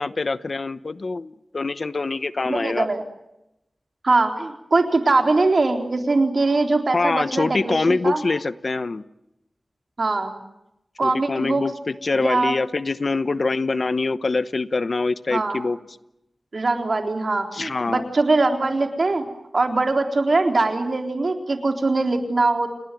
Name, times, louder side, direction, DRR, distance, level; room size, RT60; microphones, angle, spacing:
voice 1, 0.0-2.9 6.9-9.0 11.0-15.8 17.5-18.1, left 3 dB, 65° left, 14 dB, 1.0 m, -24 dB
voice 2, 2.4-3.0 4.0-8.2 10.0-10.3 11.0-11.7 12.2-12.6 15.3-15.6 16.5-19.2 19.5-22.7, right 3 dB, 65° right, 5 dB, 3.9 m, -22 dB
29.0 x 19.5 x 9.3 m, 0.88 s
wide cardioid pair, 60°, 0 cm